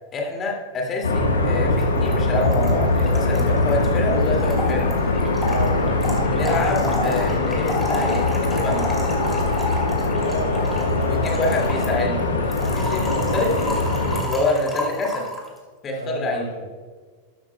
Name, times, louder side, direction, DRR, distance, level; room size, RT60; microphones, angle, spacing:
voice 1, 0.1-5.0 6.3-9.0 11.0-12.3 12.7-13.5 14.2-15.3 15.8-16.5, left 2 dB, 25° left, 1 dB, 2.2 m, -26 dB
sound 1, 1.0-14.2, left 2 dB, 70° left, 1.3 m, -22 dB
Trickle dribble / Fill (with liquid), 1.8-1.9 2.1-2.2 2.4-15.5, equal, 5° left, 2.6 m, -30 dB
voice 2, 5.4-6.3 10.1-11.4 13.0-13.6 15.9-16.6, right 2 dB, 80° right, 0 dB, 2.9 m, -31 dB
13.0 x 12.5 x 2.2 m, 1.5 s
figure-of-eight pair, 90°, 0 cm